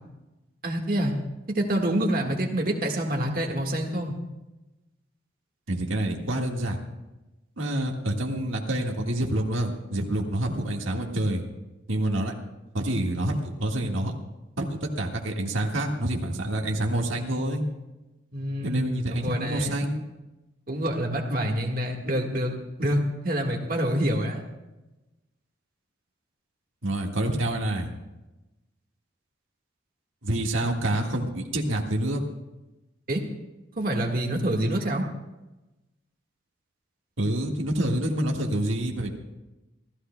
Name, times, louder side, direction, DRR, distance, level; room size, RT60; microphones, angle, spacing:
voice 1, 0.6-1.1 1.5-4.2 18.3-18.8 19.1-19.8 20.7-22.5 22.8-24.4 33.1-33.2 33.8-35.1, right 1 dB, 45° right, 1 dB, 1.6 m, -26 dB
voice 2, 5.7-6.8 7.6-11.4 11.9-12.3 12.7-14.1 14.6-17.6 18.6-20.0 26.8-27.9 30.2-32.2 37.2-39.1, right 1 dB, 90° right, 1 dB, 1.7 m, -27 dB
27.5 x 14.5 x 2.2 m, 1.0 s
head